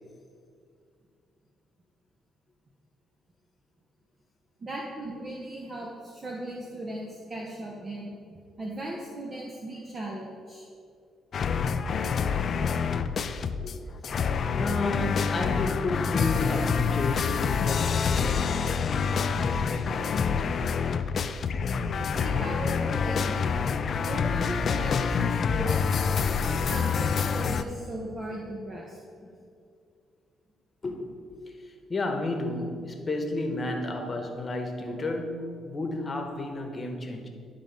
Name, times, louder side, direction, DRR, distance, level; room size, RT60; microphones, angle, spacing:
voice 1, 4.6-10.7 22.0-23.7 24.0-25.8 26.3-29.0 34.0-34.1 34.9-35.0, right 1 dB, 40° right, -2 dB, 1.0 m, -37 dB
sound 1, 11.3-13.7 14.0-27.6, left 6 dB, 55° left, 0.4 m, -27 dB
voice 2, 14.5-20.6 29.2-29.3 30.8-31.1 31.5-37.3, left 2 dB, 30° left, 3 dB, 1.1 m, -32 dB
11.0 x 3.8 x 5.3 m, 2.3 s
cardioid pair, 90°, 0 cm